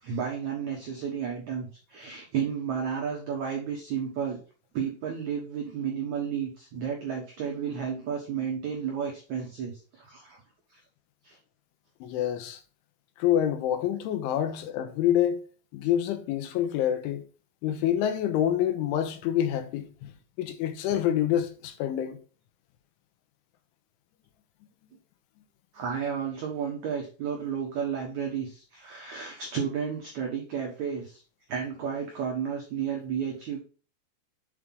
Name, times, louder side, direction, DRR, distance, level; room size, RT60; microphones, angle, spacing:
voice 1, 0.0-4.4 4.7-10.4 10.7-10.8 11.2-11.4 25.7-31.2 31.5-33.6, right 7 dB, 85° right, 1.6 m, -32 dB
voice 2, 12.0-12.6 13.2-15.4 15.7-17.2 17.6-20.1 20.4-22.2, left 10 dB, 85° left, 3.3 m, -27 dB
7.9 x 4.8 x 3.7 m
omnidirectional pair, 5.4 m